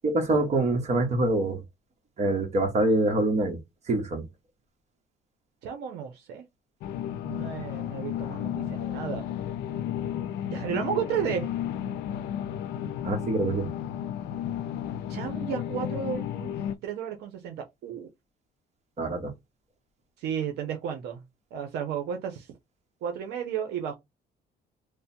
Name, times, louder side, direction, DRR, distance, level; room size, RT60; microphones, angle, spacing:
voice 1, 0.0-1.6 2.2-3.6 3.9-4.3 13.0-13.7 19.0-19.3, right 2 dB, 40° right, 1.3 m, -25 dB
voice 2, 5.6-6.4 7.2-9.2 10.4-11.5 15.1-18.1 20.2-21.2 21.5-22.5 23.0-23.9, right 8 dB, 80° right, 0.8 m, -33 dB
sound 1, 6.8-16.7, left 10 dB, 80° left, 0.4 m, -33 dB
3.4 x 2.2 x 4.3 m
cardioid pair, 110°, 17 cm